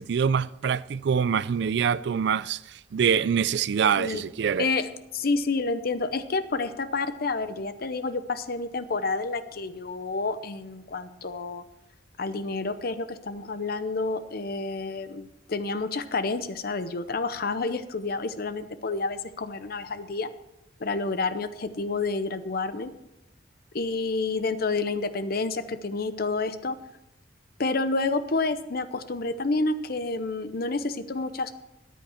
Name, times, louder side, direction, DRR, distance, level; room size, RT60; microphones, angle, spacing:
voice 1, 0.0-4.7, right 7 dB, 65° right, 0.4 m, -25 dB
voice 2, 4.6-4.9 5.1-11.6 12.2-20.3 20.8-22.9 23.7-26.8 27.6-31.5, left 3 dB, 55° left, 0.7 m, -29 dB
13.5 x 10.0 x 4.4 m
head